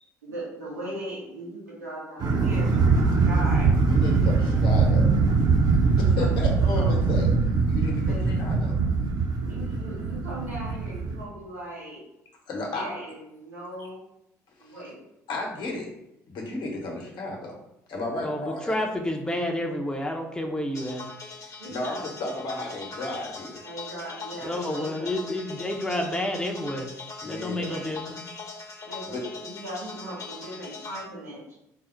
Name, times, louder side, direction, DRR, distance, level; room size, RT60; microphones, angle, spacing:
voice 1, 0.2-3.7 4.2-4.3 5.8-7.0 8.0-8.2 9.4-12.0 12.7-14.0 14.6-15.0 21.6-22.1 23.6-25.1 27.6-27.9 28.8-31.4, right 1 dB, 90° right, -7 dB, 1.2 m, -38 dB
sound 1, 2.2-11.2, right 4 dB, 45° right, 0.7 m, -22 dB
voice 2, 3.1-5.1 6.0-7.3 7.6-8.8 10.0-10.1 12.5-13.0 13.8-13.9 14.6-14.8 15.3-15.9 16.3-17.6 17.9-18.8 21.4-23.6 27.2-27.8 29.1-29.2, left 2 dB, 60° left, -1 dB, 1.0 m, -34 dB
voice 3, 18.2-21.1 24.4-26.9 27.2-28.2, left 1 dB, 10° left, 1 dB, 0.6 m, -30 dB
sound 2, 20.7-31.0, left 4 dB, 40° left, 0.8 m, -41 dB
3.8 x 2.0 x 4.3 m, 0.84 s
hypercardioid pair, 55°, 9 cm